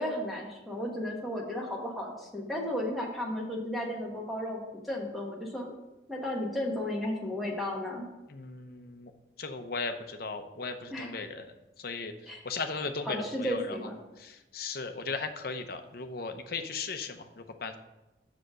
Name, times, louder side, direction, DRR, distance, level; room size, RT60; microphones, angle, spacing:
voice 1, 0.0-4.6 4.8-5.7 6.1-8.1 10.9-11.1 12.3-12.4 13.0-14.0, left 1 dB, ahead, -1 dB, 1.2 m, -34 dB
voice 2, 8.3-9.1 9.4-11.5 11.8-12.1 12.4-13.7 14.2-17.7, left 4 dB, 50° left, 6 dB, 0.7 m, -37 dB
6.4 x 5.0 x 6.2 m, 1.0 s
head